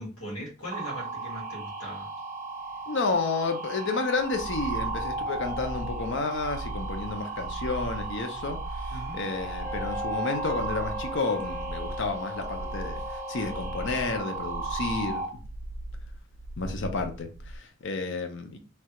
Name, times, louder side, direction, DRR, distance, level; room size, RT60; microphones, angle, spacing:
voice 1, 0.0-2.1 8.9-9.2, equal, 90° left, 1.7 m, -39 dB
sound 1, 0.7-15.3, right 3 dB, 30° right, 0.7 m, -36 dB
voice 2, 2.9-15.2 16.6-18.6, left 3 dB, 60° left, 0.6 m, -31 dB
sound 2, 4.2-17.6, right 1 dB, 75° right, 0.4 m, -39 dB
Wind instrument woodwind instrument, 9.6-14.7, left 3 dB, 10° left, 0.4 m, -41 dB
3.2 x 2.3 x 2.9 m
head